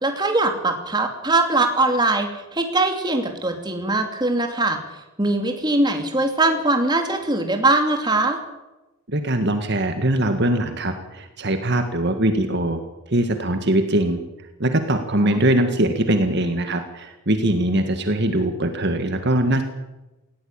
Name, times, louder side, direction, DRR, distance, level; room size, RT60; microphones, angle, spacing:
voice 1, 0.0-4.8 5.2-8.4 15.2-15.4, right 2 dB, 20° right, 5 dB, 2.6 m, -21 dB
voice 2, 9.1-12.8 13.1-14.2 14.6-19.6, right 1 dB, 50° right, 7 dB, 1.8 m, -21 dB
18.5 x 16.5 x 8.9 m, 1.0 s
head